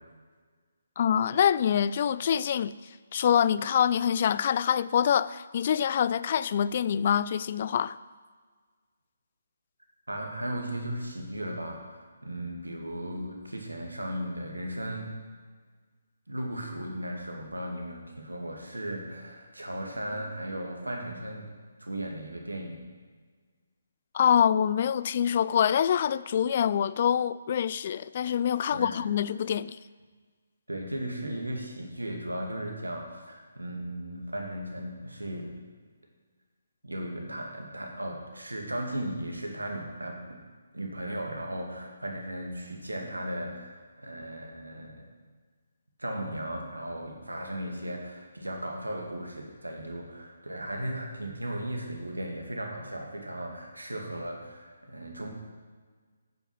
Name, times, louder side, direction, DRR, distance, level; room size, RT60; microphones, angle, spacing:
voice 1, 1.0-2.7 3.1-8.0 24.1-29.8, left 8 dB, 40° left, 0.3 m, -25 dB
voice 2, 10.1-15.1 16.3-21.5 21.8-22.8 28.7-29.0 30.7-35.6 36.8-40.4 40.7-45.1 46.0-55.3, right 1 dB, 80° right, 2.2 m, -36 dB
9.4 x 7.7 x 6.0 m
figure-of-eight pair, 140°, 0 cm